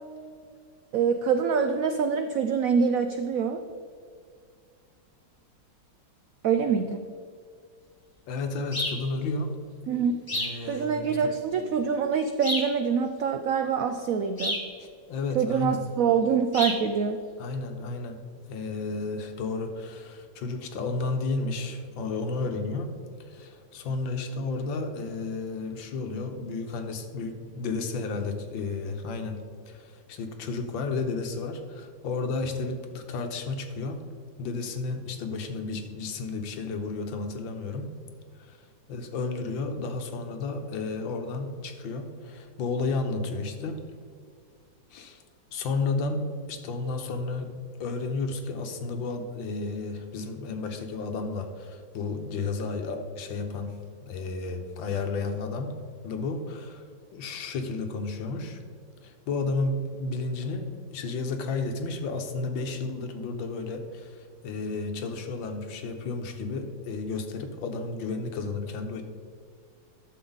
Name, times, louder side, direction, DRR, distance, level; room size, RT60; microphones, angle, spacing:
voice 1, 0.9-3.6 6.4-7.1 9.9-10.2 10.7-14.6 15.3-17.2, right 6 dB, 85° right, 7 dB, 0.7 m, -25 dB
voice 2, 8.3-9.5 10.3-11.3 14.8-15.8 17.4-18.2 18.5-34.1 34.4-37.9 38.4-38.6 38.9-43.9 44.9-45.2 45.5-55.8 56.0-58.6 59.0-69.0, left 3 dB, 80° left, 6 dB, 1.7 m, -32 dB
sound 1, 8.7-9.0 10.3-10.6 12.4-12.8 14.4-14.7 16.5-16.8, left 1 dB, 15° left, 0.8 m, -30 dB
11.0 x 7.0 x 3.9 m, 2.1 s
omnidirectional pair, 2.1 m